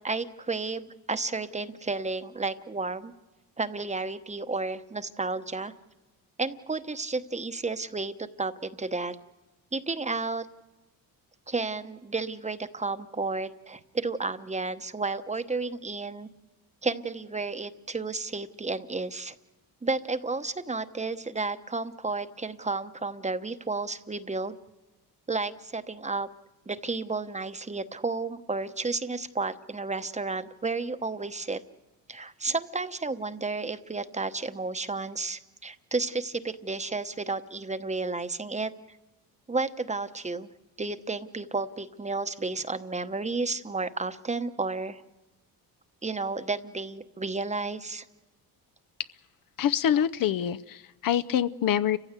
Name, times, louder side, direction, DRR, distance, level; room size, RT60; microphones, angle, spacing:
voice 1, 0.0-3.1 3.6-5.7 6.4-9.2 9.7-10.5 11.5-16.3 16.8-19.3 19.8-24.6 25.3-26.3 26.7-31.6 32.1-38.7 39.5-40.5 40.8-45.0 46.0-48.0, right 3 dB, 15° right, 11 dB, 1.0 m, -32 dB
voice 2, 49.6-52.0, left 10 dB, 55° left, 13 dB, 0.7 m, -25 dB
29.5 x 15.5 x 8.2 m, 1.1 s
cardioid pair, 90°, 39 cm